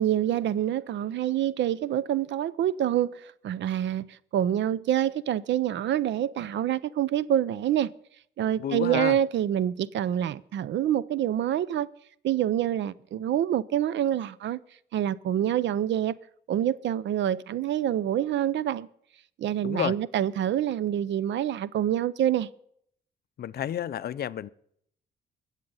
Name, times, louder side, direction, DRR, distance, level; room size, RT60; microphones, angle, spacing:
voice 1, 0.0-7.9 8.4-11.9 12.2-14.6 14.9-16.2 16.5-18.9 19.4-22.5, right 11 dB, 65° right, 0.5 m, -26 dB
voice 2, 8.6-9.2 19.6-19.9 23.4-24.5, left 10 dB, 50° left, 0.5 m, -30 dB
21.5 x 7.5 x 5.5 m
cardioid pair, 90°, 20 cm